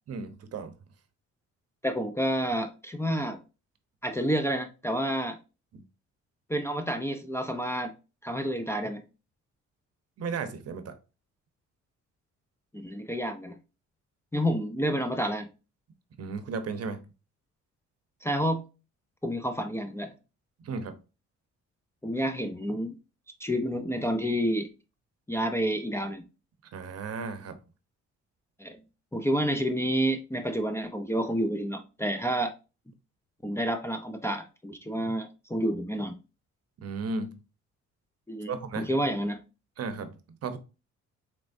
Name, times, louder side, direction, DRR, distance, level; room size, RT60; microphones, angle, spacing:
voice 1, 0.1-0.7 5.7-5.8 10.2-11.0 16.2-17.0 20.6-20.9 26.7-27.6 36.8-37.3 38.5-38.9 39.8-40.1 40.4-40.6, right 4 dB, 55° right, 0.8 m, -34 dB
voice 2, 1.8-3.4 4.0-5.4 6.5-7.9 8.2-9.0 12.7-13.6 14.3-15.5 18.2-18.6 19.2-20.1 22.0-23.0 23.4-24.7 25.3-26.2 28.6-28.8 29.1-32.5 33.4-36.1 38.3-39.4, equal, 10° left, 0.5 m, -29 dB
4.4 x 3.1 x 2.6 m
cardioid pair, 90°, 30 cm